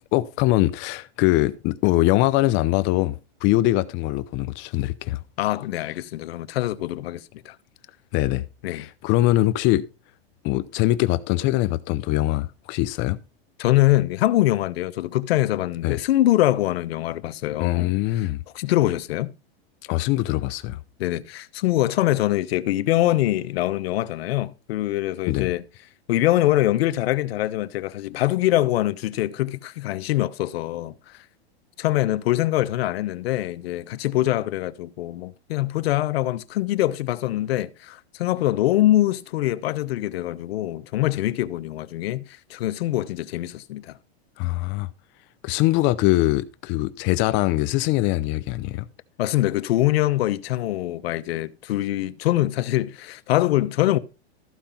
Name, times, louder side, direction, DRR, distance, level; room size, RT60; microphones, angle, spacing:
voice 1, 0.1-5.2 8.1-8.4 8.7-9.9 10.4-13.2 15.8-16.0 17.6-18.4 19.8-20.8 25.3-25.5 44.4-44.9 45.4-48.9, left 17 dB, 35° left, 0.7 m, -22 dB
voice 2, 5.4-7.6 8.6-8.9 13.6-18.3 18.5-19.3 21.0-25.6 26.1-31.2 31.8-44.0 49.2-54.0, left 15 dB, 70° left, 1.0 m, -23 dB
14.0 x 5.1 x 5.8 m
supercardioid pair, 140°, 31 cm